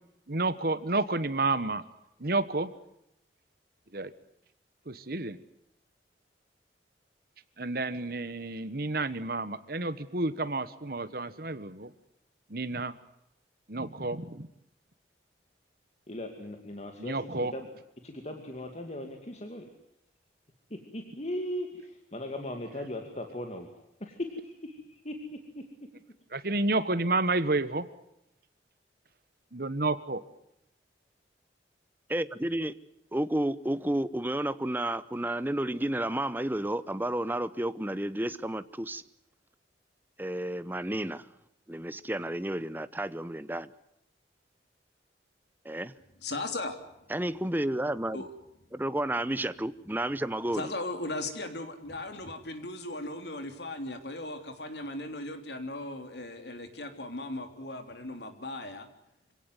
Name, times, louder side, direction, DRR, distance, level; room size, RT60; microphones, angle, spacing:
voice 1, 0.3-1.8 2.2-2.7 3.9-4.1 4.9-5.4 7.6-11.9 12.5-12.9 13.7-14.5 17.0-17.5 26.3-27.9 29.5-30.2, right 2 dB, 55° right, 1.4 m, -30 dB
voice 2, 16.1-17.7 18.0-19.7 20.9-23.7 24.0-24.8 25.0-25.2, left 1 dB, 40° left, 2.5 m, -38 dB
voice 3, 32.1-32.8 33.1-39.0 40.2-41.3 41.7-43.7 45.6-45.9 47.1-48.3 48.7-50.7, right 1 dB, 10° right, 0.8 m, -31 dB
voice 4, 46.2-46.8 48.1-48.3 50.5-58.9, left 2 dB, 70° left, 3.4 m, -37 dB
26.0 x 17.5 x 9.4 m
head